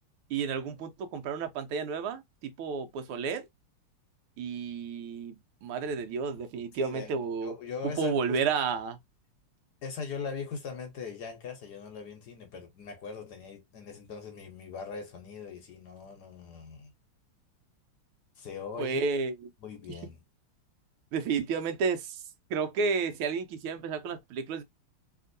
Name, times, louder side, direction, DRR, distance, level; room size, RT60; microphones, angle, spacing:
voice 1, 0.3-3.5 4.4-5.4 5.6-7.5 7.8-8.9 18.8-19.3 21.1-22.2 22.5-24.6, right 5 dB, 85° right, 1.6 m, -31 dB
voice 2, 6.8-7.1 7.4-8.5 9.8-16.9 18.4-19.1 19.6-20.2, left 5 dB, 60° left, 1.2 m, -40 dB
3.4 x 2.9 x 2.5 m
omnidirectional pair, 2.4 m